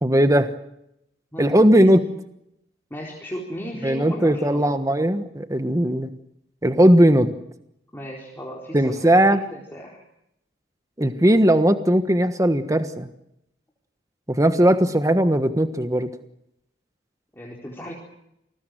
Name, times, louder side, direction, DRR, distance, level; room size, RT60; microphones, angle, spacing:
voice 1, 0.0-0.5 1.4-2.0 3.8-6.1 6.6-7.3 8.7-9.4 11.0-13.1 14.3-16.1, right 1 dB, 20° right, 9 dB, 1.4 m, -18 dB
voice 2, 1.3-1.9 2.9-4.7 7.9-10.0 14.8-14.9 17.3-17.9, equal, 15° left, -2 dB, 4.3 m, -36 dB
29.0 x 20.0 x 7.8 m, 0.81 s
head